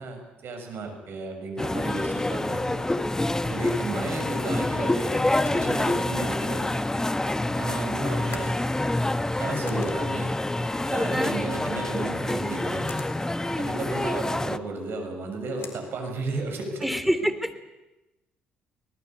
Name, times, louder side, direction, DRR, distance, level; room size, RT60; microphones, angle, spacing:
voice 1, 0.0-2.8 3.5-5.2 5.5-6.8 7.6-8.6 9.4-10.3 10.9-13.0 13.6-16.9, right 2 dB, 60° right, 5 dB, 6.8 m, -34 dB
sound 1, 1.6-14.6, left 1 dB, 15° left, 1.2 m, -27 dB
sound 2, 5.3-16.8, left 6 dB, 65° left, 4.0 m, -48 dB
voice 2, 12.3-12.6 14.0-14.1 16.8-17.6, equal, 5° right, 10 dB, 3.3 m, -27 dB
24.0 x 20.0 x 8.4 m, 1.0 s
hypercardioid pair, 50°, 4 cm